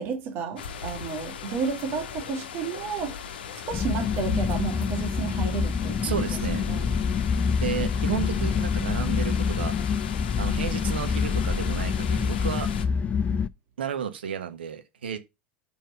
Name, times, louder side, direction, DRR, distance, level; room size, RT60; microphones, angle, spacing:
voice 1, 0.0-3.2 3.5-6.2 6.6-6.9 8.1-8.2, right 5 dB, 45° right, 1.9 m, -32 dB
sound 1, 0.6-12.9, left 7 dB, 70° left, 0.8 m, -39 dB
sound 2, 3.7-13.5, left 6 dB, 25° left, 0.5 m, -26 dB
voice 2, 6.0-6.7 7.6-9.7 10.4-12.7 13.8-15.2, right 8 dB, 75° right, 1.2 m, -32 dB
5.6 x 4.4 x 5.4 m
figure-of-eight pair, 85°, 6 cm